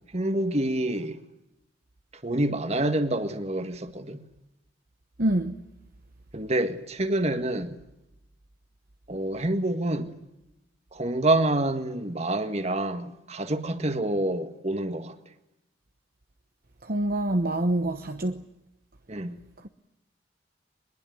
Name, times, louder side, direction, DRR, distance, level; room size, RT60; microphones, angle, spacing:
voice 1, 0.1-1.2 2.2-4.2 6.3-7.8 9.1-10.1 10.9-15.1 19.1-19.4, right 1 dB, 35° right, 1.8 m, -27 dB
voice 2, 5.2-5.5 16.8-18.4, right 1 dB, 50° right, 1.1 m, -26 dB
22.5 x 22.0 x 9.5 m
head